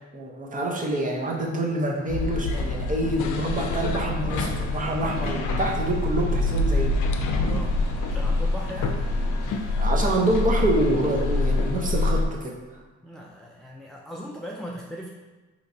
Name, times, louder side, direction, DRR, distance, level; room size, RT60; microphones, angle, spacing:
voice 1, 0.1-7.0 9.8-12.6, right 1 dB, 25° right, -1 dB, 0.7 m, -26 dB
sound 1, 2.1-12.2, left 2 dB, 80° left, 0.5 m, -25 dB
sound 2, 4.5-11.7, equal, 55° right, 1.1 m, -41 dB
voice 2, 7.5-7.8 8.1-9.0 13.0-15.1, equal, ahead, -2 dB, 0.3 m, -38 dB
4.0 x 3.0 x 2.6 m, 1.2 s
cardioid pair, 90°, 30 cm